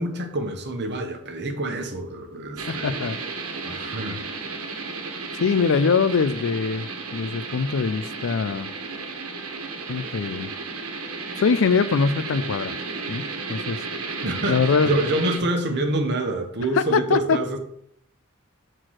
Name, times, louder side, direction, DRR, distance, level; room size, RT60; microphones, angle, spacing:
voice 1, 0.0-3.0 3.6-4.2 14.2-17.6, right 1 dB, 50° right, 4 dB, 1.2 m, -27 dB
sound 1, 2.6-15.4, right 4 dB, 80° right, 1.4 m, -33 dB
voice 2, 2.7-3.2 5.3-8.7 9.9-10.5 11.4-12.8 13.1-13.8 14.5-15.1 16.8-17.4, left 5 dB, 65° left, 14 dB, 0.4 m, -23 dB
5.9 x 4.5 x 6.4 m, 0.70 s
head